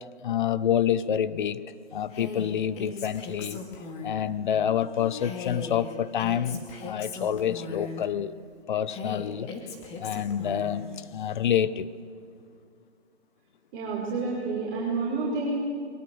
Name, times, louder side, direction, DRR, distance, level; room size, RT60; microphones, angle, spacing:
voice 1, 0.2-1.6 1.9-3.6 4.0-8.3 8.7-9.5 10.0-11.9, left 9 dB, 45° left, 16 dB, 0.8 m, -27 dB
Female speech woman speaking, 2.1-4.3 5.2-8.1 8.9-10.8, left 4 dB, 15° left, 2.4 m, -38 dB
voice 2, 13.7-15.5, right 3 dB, 25° right, -6 dB, 5.4 m, -29 dB
23.0 x 22.5 x 7.9 m, 2.1 s
hypercardioid pair, 150°, 35 cm